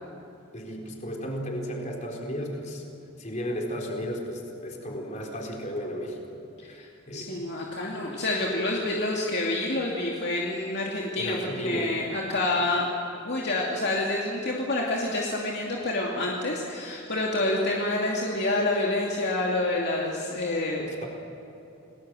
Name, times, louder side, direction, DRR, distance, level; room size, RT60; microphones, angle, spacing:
voice 1, 0.5-2.8 3.2-6.4 6.7-7.3 11.2-11.9 20.8-21.1, equal, 35° left, 0 dB, 4.2 m, -34 dB
voice 2, 7.1-12.9 13.2-20.9, left 2 dB, 55° left, -3 dB, 2.7 m, -28 dB
29.0 x 20.0 x 7.8 m, 2.8 s
head